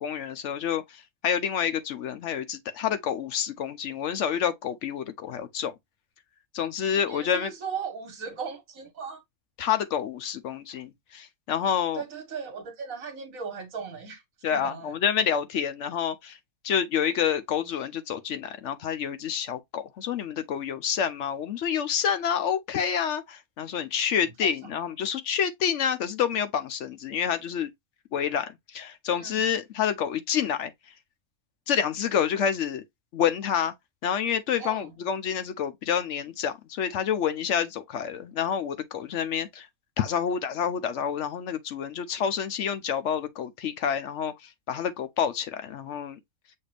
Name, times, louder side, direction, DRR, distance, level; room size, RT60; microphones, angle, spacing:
voice 1, 0.0-5.7 6.5-7.5 9.6-12.0 14.4-16.4 16.6-27.7 28.1-30.7 31.7-32.8 33.1-33.7 34.0-39.7 40.0-46.2, left 8 dB, 65° left, 0.8 m, -28 dB
voice 2, 7.1-9.2 12.0-14.2 14.5-14.9 29.1-29.4 34.6-34.8, right 6 dB, 70° right, 1.7 m, -37 dB
6.5 x 2.5 x 3.3 m
omnidirectional pair, 1.5 m